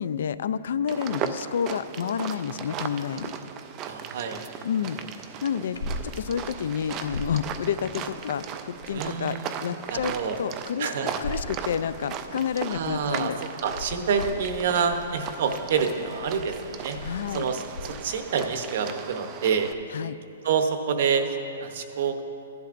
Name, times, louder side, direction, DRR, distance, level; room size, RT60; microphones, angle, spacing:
voice 1, 0.0-3.3 4.6-5.0 5.4-5.8 6.0-10.1 10.4-13.4 17.0-17.5 19.9-20.2, left 8 dB, 60° left, 15 dB, 0.3 m, -29 dB
sound 1, 0.9-19.7, right 8 dB, 20° right, 0.3 m, -37 dB
voice 2, 3.9-4.4 4.8-4.9 8.9-10.4 10.8-11.1 12.7-13.3 13.6-17.0 17.3-19.7 20.4-22.2, right 6 dB, 45° right, 7 dB, 0.7 m, -27 dB
sound 2, 5.5-6.1 6.4-6.5 6.9-7.4 8.6-9.2 9.7-10.3 11.0-11.6 12.4-13.0 13.4-18.2 19.5-19.8 20.4-20.5, left 1 dB, 85° left, 0.7 m, -39 dB
15.5 x 10.5 x 2.5 m, 2.8 s
hypercardioid pair, 175°, 0 cm